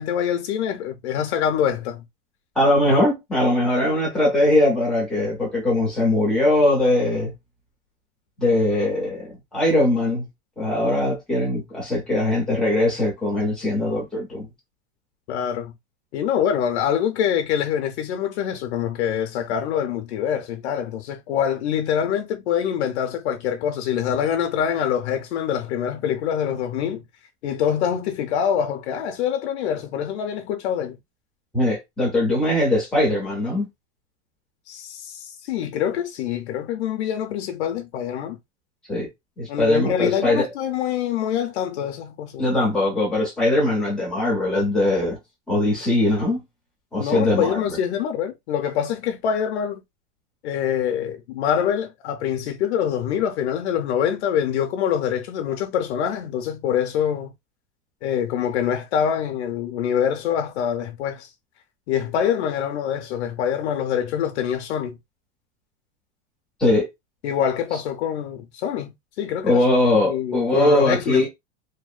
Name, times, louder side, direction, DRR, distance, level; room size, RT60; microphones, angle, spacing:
voice 1, 0.0-2.0 15.3-15.7 16.1-27.0 27.4-31.0 34.7-38.4 39.5-42.4 47.0-49.8 50.4-57.3 58.0-61.3 61.9-64.9 67.2-69.6 70.0-71.3, left 9 dB, 70° left, 0.5 m, -25 dB
voice 2, 2.6-7.3 8.4-10.2 10.6-14.5 31.5-33.7 38.9-39.1 39.4-40.5 42.4-45.2 45.5-46.4 46.9-47.8 66.6-66.9 69.4-71.3, left 1 dB, ahead, 0.3 m, -21 dB
2.7 x 2.1 x 2.3 m
supercardioid pair, 170°, 34 cm